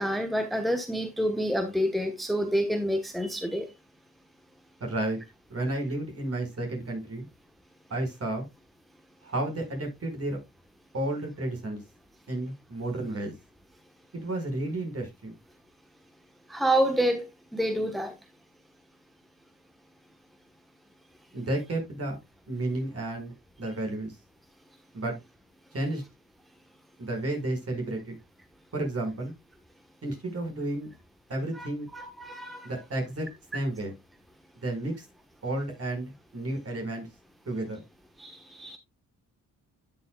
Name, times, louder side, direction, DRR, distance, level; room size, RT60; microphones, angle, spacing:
voice 1, 0.0-3.7 16.5-17.2 17.5-18.1 31.5-31.7 31.9-32.7 38.2-38.8, equal, ahead, 1.2 m, -28 dB
voice 2, 4.8-5.2 5.5-7.3 7.9-8.5 9.2-10.4 10.9-11.8 12.3-13.3 14.1-15.4 21.3-22.2 22.5-23.3 23.6-24.2 24.9-25.1 25.7-26.0 27.0-28.1 28.7-29.3 30.0-30.9 31.3-31.9 32.6-33.3 33.5-33.9 34.6-35.0 35.4-37.1 37.5-37.8, right 1 dB, 45° right, 5.4 m, -32 dB
11.5 x 7.0 x 2.3 m
cardioid pair, 75°, 34 cm